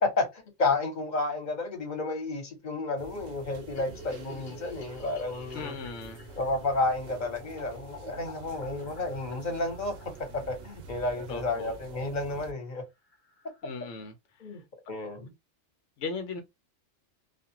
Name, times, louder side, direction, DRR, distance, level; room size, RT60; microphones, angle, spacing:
voice 1, 0.0-5.8 6.4-10.0 10.3-12.8 14.4-14.6 14.9-15.3, left 2 dB, 40° left, 1.2 m, -31 dB
sound 1, 3.0-12.5, right 4 dB, 70° right, 0.9 m, -47 dB
sound 2, 3.6-11.8 12.1-12.2 12.4-12.5 12.8-12.9 13.1-13.7, left 4 dB, 60° left, 1.0 m, -51 dB
voice 2, 5.5-6.3 11.3-11.8 13.6-14.1 16.0-16.4, left 4 dB, 90° left, 1.0 m, -37 dB
2.5 x 2.4 x 2.8 m
omnidirectional pair, 1.2 m